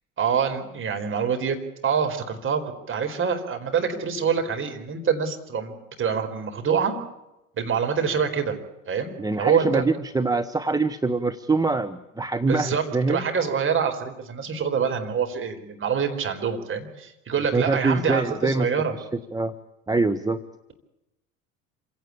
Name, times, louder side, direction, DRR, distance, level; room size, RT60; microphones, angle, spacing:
voice 1, 0.2-1.6 1.8-7.0 7.6-8.6 8.9-9.8 12.5-18.9, right 6 dB, 30° right, 5 dB, 4.5 m, -25 dB
voice 2, 9.2-13.2 17.5-18.7 19.3-19.5 19.9-20.4, right 3 dB, 10° right, 8 dB, 1.0 m, -24 dB
26.5 x 17.0 x 8.7 m, 0.92 s
figure-of-eight pair, 65°, 41 cm